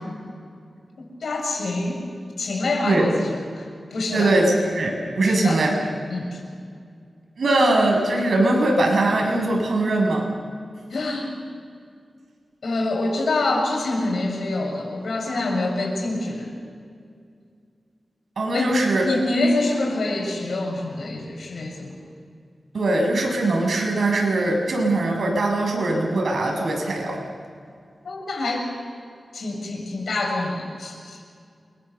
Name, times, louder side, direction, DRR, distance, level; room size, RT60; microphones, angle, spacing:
voice 1, 1.0-2.0 2.4-4.3 5.2-5.6 6.1-6.4 10.9-11.3 12.6-16.5 18.5-18.8 19.0-21.9 28.0-28.7 29.3-31.2, left 2 dB, 85° left, 1 dB, 7.2 m, -26 dB
voice 2, 4.1-5.7 7.4-10.3 18.4-19.1 22.7-27.2, right 2 dB, 75° right, 1 dB, 7.1 m, -21 dB
28.5 x 25.0 x 7.1 m, 2.2 s
wide cardioid pair, 75°, 0 cm